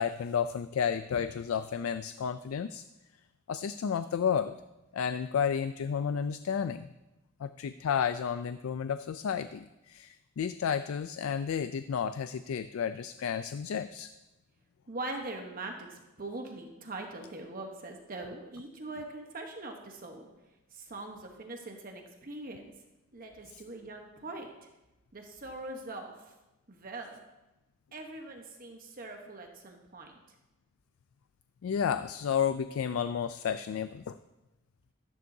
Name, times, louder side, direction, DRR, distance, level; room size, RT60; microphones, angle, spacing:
voice 1, 0.0-2.8 3.5-4.6 4.9-6.9 7.4-14.1 23.5-23.6 31.6-34.2, left 7 dB, 80° left, 12 dB, 0.3 m, -32 dB
voice 2, 14.9-20.3 20.7-22.7 23.1-24.7 25.1-26.3 26.7-27.2 27.9-30.2, right 2 dB, 45° right, 3 dB, 1.0 m, -42 dB
13.5 x 11.0 x 2.7 m, 1.0 s
head